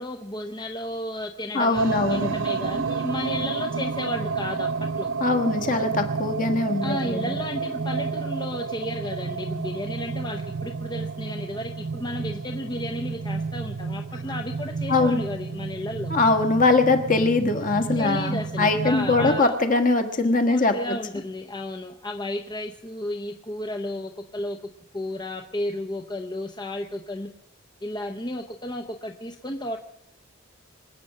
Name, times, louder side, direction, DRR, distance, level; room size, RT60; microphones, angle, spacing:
voice 1, 0.0-4.7 5.0-5.1 6.8-16.1 18.0-19.6 20.5-24.6 24.9-27.3 27.8-29.8, left 1 dB, 20° left, 4 dB, 0.7 m, -33 dB
voice 2, 1.5-2.3 5.2-7.3 14.9-15.2 16.1-21.0, left 3 dB, 40° left, 7 dB, 1.4 m, -22 dB
sound 1, 1.7-19.4, right 4 dB, 65° right, 0.6 m, -30 dB
24.5 x 8.6 x 6.5 m, 0.80 s
head